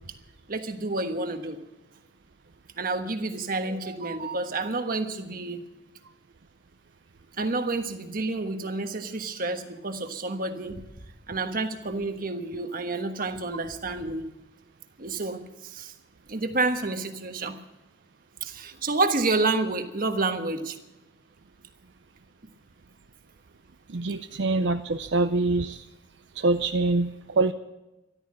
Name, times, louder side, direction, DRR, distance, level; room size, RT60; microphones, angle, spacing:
voice 1, 0.5-1.6 2.8-5.6 7.4-10.8 11.3-14.3 15.0-15.9 16.3-17.6 18.4-20.8, right 3 dB, 50° right, 7 dB, 1.3 m, -29 dB
voice 2, 23.9-25.8 26.4-27.5, right 3 dB, 70° right, 8 dB, 0.6 m, -25 dB
13.5 x 13.0 x 7.4 m, 1.0 s
head